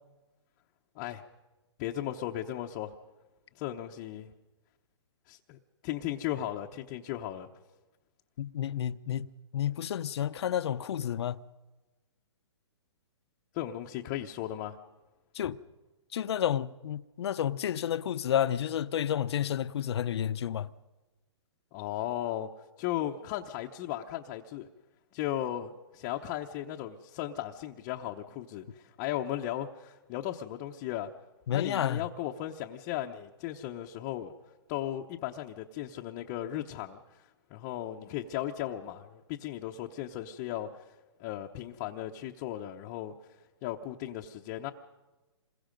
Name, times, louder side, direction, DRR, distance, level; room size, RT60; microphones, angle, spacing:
voice 1, 1.8-2.9 3.5-4.3 5.3-7.5 13.5-14.8 21.7-22.5 22.8-24.7 25.1-31.1 31.5-34.3 34.7-40.8 41.2-43.1 43.6-44.7, left 12 dB, 30° left, 0.9 m, -36 dB
voice 2, 8.4-9.3 9.5-11.4 15.3-15.6 16.1-20.7 31.5-32.0, left 10 dB, 60° left, 0.8 m, -30 dB
27.5 x 21.5 x 5.2 m
hypercardioid pair, 150°, 15 cm